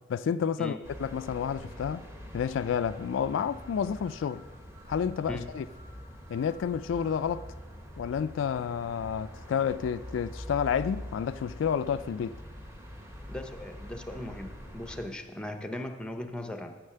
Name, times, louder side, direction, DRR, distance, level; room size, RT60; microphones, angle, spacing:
voice 1, 0.1-2.0 2.3-4.4 4.9-5.7 6.3-7.5 8.0-12.4, left 7 dB, 80° left, 0.3 m, -30 dB
sound 1, 0.8-15.1, equal, 15° right, 1.2 m, -45 dB
voice 2, 13.3-16.8, left 1 dB, 5° left, 0.7 m, -38 dB
9.7 x 6.5 x 6.7 m
head